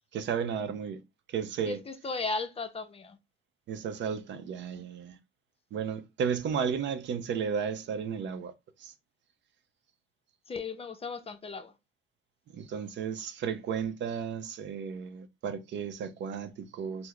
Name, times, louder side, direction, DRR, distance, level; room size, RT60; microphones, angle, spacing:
voice 1, 0.1-1.0 1.3-1.8 3.7-5.2 5.7-8.5 8.8-8.9 12.5-17.1, right 7 dB, 65° right, 0.6 m, -33 dB
voice 2, 1.7-3.2 10.5-11.7, left 3 dB, 30° left, 0.5 m, -36 dB
3.1 x 2.0 x 3.7 m
cardioid pair, 90°, 20 cm